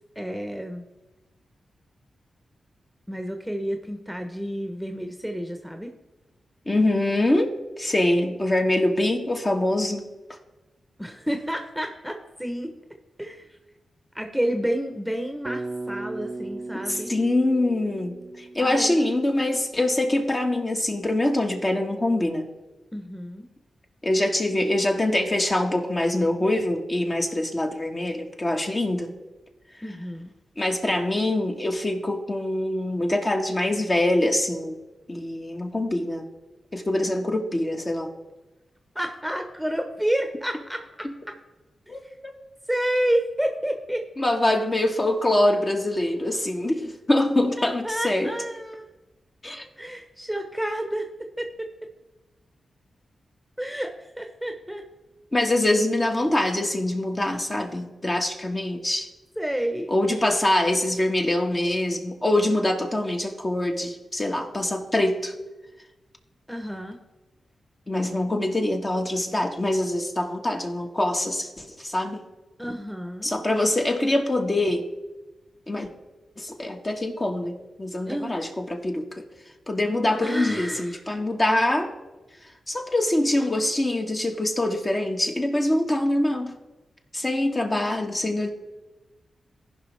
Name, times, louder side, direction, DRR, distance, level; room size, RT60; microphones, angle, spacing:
voice 1, 0.1-0.8 3.1-5.9 11.0-12.7 13.2-13.6 14.1-17.1 18.6-19.0 22.9-23.5 29.8-30.3 38.9-41.1 42.0-42.1 42.7-44.1 47.6-48.9 49.8-51.1 51.4-51.7 53.6-54.8 59.4-59.9 66.5-67.0 72.6-73.3 78.1-78.4 80.2-81.0, right 1 dB, ahead, 5 dB, 1.1 m, -30 dB
voice 2, 6.6-10.0 16.9-22.5 24.0-29.1 30.6-34.8 35.1-36.2 36.7-38.1 41.9-42.3 44.2-48.3 49.4-49.7 55.3-59.1 59.9-65.3 67.9-72.2 73.2-74.9 75.7-75.9 76.4-79.2 79.7-81.9 82.7-86.5 87.1-88.5, left 1 dB, 35° left, 2 dB, 1.6 m, -24 dB
Bass guitar, 15.4-19.6, right 2 dB, 40° right, 0.6 m, -37 dB
15.5 x 5.3 x 3.5 m, 1.1 s
supercardioid pair, 40°, 0 cm